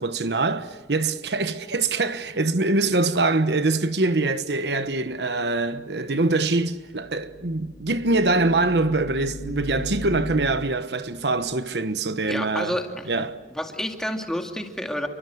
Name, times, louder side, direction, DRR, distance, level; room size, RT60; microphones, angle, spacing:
voice 1, 0.0-12.8 13.1-13.4, right 2 dB, 75° right, 1.2 m, -24 dB
sound 1, 6.8-11.6, equal, 60° left, 2.1 m, -38 dB
voice 2, 12.3-13.1 13.5-15.1, equal, 5° left, 2.3 m, -29 dB
30.0 x 24.5 x 7.9 m
head